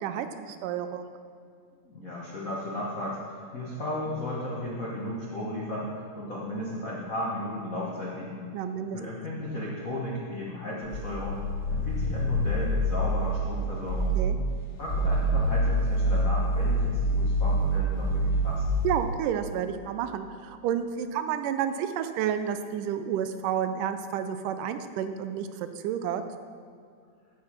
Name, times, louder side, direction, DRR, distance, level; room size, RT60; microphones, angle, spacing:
voice 1, 0.0-1.1 8.5-9.0 14.2-14.4 18.8-26.2, right 9 dB, 90° right, 9 dB, 2.2 m, -30 dB
voice 2, 1.8-8.5 8.9-14.2 14.8-18.6, left 1 dB, 80° left, -5 dB, 0.7 m, -35 dB
sound 1, 10.8-13.5 13.8-14.4 14.8-19.0, equal, 40° left, 1.9 m, -26 dB
14.0 x 4.9 x 5.9 m, 2.2 s
omnidirectional pair, 3.6 m